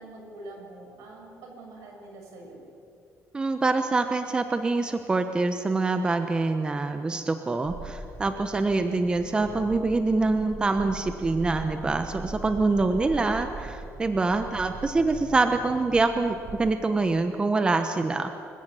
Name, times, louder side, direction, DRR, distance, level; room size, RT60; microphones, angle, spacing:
voice 1, 0.0-2.6, right 2 dB, 80° right, 1 dB, 6.7 m, -44 dB
voice 2, 3.3-18.3, right 3 dB, 15° right, 8 dB, 1.0 m, -25 dB
sound 1, 7.6-17.0, right 4 dB, 60° right, 2.5 m, -41 dB
26.0 x 14.5 x 9.0 m, 2.5 s
cardioid pair, 145°, 5 cm